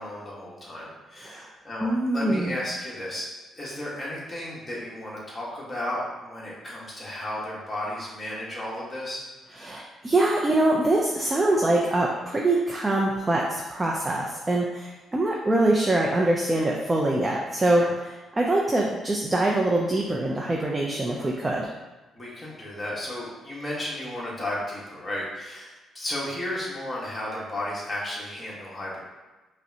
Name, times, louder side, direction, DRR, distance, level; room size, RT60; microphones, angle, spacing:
voice 1, 0.0-3.2 3.5-9.2 9.5-9.7 17.7-17.9 22.1-29.0, left 1 dB, 20° left, -6 dB, 1.4 m, -34 dB
voice 2, 1.2-1.5 1.8-2.6 9.6-21.7, right 1 dB, 20° right, -2 dB, 0.4 m, -24 dB
5.2 x 2.1 x 2.8 m, 1.2 s
cardioid pair, 90°, 0 cm